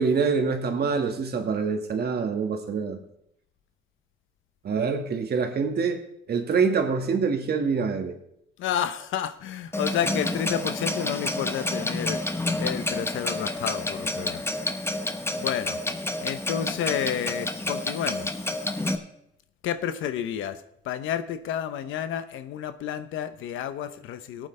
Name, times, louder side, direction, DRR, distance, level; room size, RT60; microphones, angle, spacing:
voice 1, 0.0-3.0 4.6-6.0 6.3-8.2, right 5 dB, 55° right, 4 dB, 1.8 m, -25 dB
voice 2, 8.6-12.2 12.6-14.4 14.9-15.1 15.4-15.8 16.2-18.4 19.6-24.5, left 9 dB, 85° left, 12 dB, 0.9 m, -30 dB
Clock, 9.7-19.0, left 1 dB, 10° left, 1.1 m, -29 dB
18.5 x 8.9 x 3.3 m, 0.75 s
cardioid pair, 90°, 20 cm